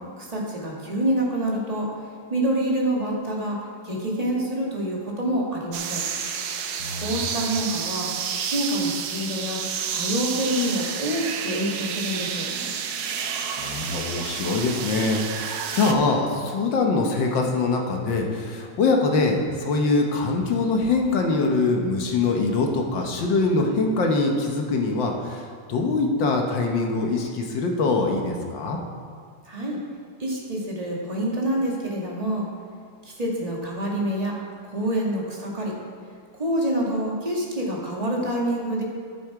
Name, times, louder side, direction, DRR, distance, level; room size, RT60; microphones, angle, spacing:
voice 1, 0.2-1.9 2.3-3.6 3.8-6.0 7.0-8.1 8.4-9.6 9.9-12.5 29.4-29.8 30.2-32.5 33.0-34.3 34.6-35.7 36.3-38.8, right 1 dB, 20° right, -3 dB, 1.6 m, -26 dB
sound 1, 5.7-15.9, right 7 dB, 65° right, 0.9 m, -30 dB
voice 2, 6.8-7.1 13.5-28.8, left 3 dB, 65° left, 2 dB, 1.7 m, -23 dB
11.0 x 8.8 x 4.7 m, 2.1 s
omnidirectional pair, 2.3 m